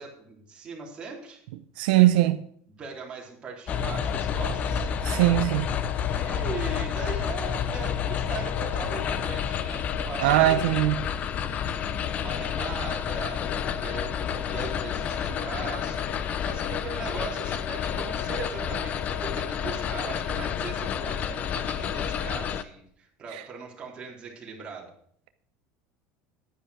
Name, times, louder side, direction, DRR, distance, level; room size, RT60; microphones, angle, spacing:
voice 1, 0.0-1.4 1.9-2.3 2.8-4.9 6.0-24.9, right 4 dB, 25° right, 3.5 m, -40 dB
voice 2, 1.8-2.4 5.0-5.7 10.2-11.0, right 15 dB, 90° right, 0.7 m, -20 dB
sound 1, 3.7-22.6, left 8 dB, 35° left, 0.6 m, -29 dB
10.0 x 10.0 x 4.9 m
cardioid pair, 160°, 5 cm